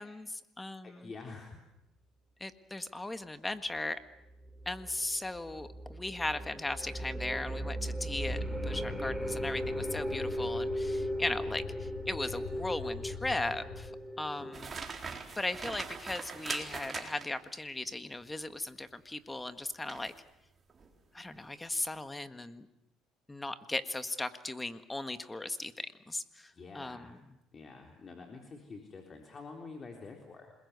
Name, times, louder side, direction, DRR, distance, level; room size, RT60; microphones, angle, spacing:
voice 1, 0.0-1.1 2.4-4.0 4.6-13.9 14.2-14.8 15.3-20.1 21.1-22.7 23.3-27.2, left 2 dB, 15° left, 10 dB, 1.6 m, -37 dB
voice 2, 0.8-1.6 14.2-14.6 26.5-27.2 27.5-30.5, left 4 dB, 30° left, 2 dB, 3.7 m, -48 dB
sound 1, 4.3-14.6, equal, 5° right, 3.6 m, -37 dB
sound 2, 8.1-13.9, left 7 dB, 60° left, 3.6 m, -44 dB
sound 3, 14.5-17.5 19.9-20.2 20.7-20.9, right 5 dB, 30° right, 4.0 m, -41 dB
27.5 x 21.0 x 8.2 m, 0.88 s
supercardioid pair, 95°, 0 cm